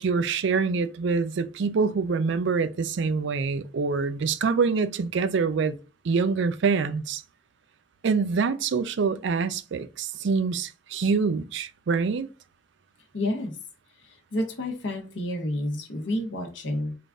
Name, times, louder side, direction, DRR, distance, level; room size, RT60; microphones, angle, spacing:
voice 1, 0.0-5.7 6.0-7.2 8.0-12.3, right 5 dB, 65° right, 0.4 m, -25 dB
voice 2, 13.1-13.6 14.0-17.0, left 1 dB, 70° left, 1.0 m, -30 dB
3.8 x 2.5 x 3.5 m
head